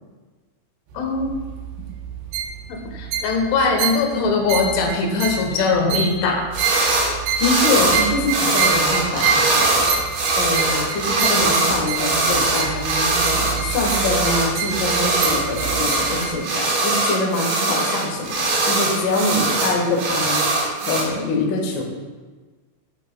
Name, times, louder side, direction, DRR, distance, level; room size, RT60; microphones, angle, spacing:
sound 1, 0.9-16.3, right 6 dB, 80° right, 3.2 m, -28 dB
voice 1, 1.0-1.3 2.7-6.4, left 4 dB, 80° left, 2 dB, 3.4 m, -21 dB
sound 2, 6.5-7.1 7.4-21.0, right 2 dB, 60° right, 2.6 m, -21 dB
voice 2, 7.4-9.9 10.3-20.4 20.9-21.8, left 2 dB, 65° left, -1 dB, 2.3 m, -24 dB
11.0 x 9.0 x 2.2 m, 1.4 s
omnidirectional pair, 5.5 m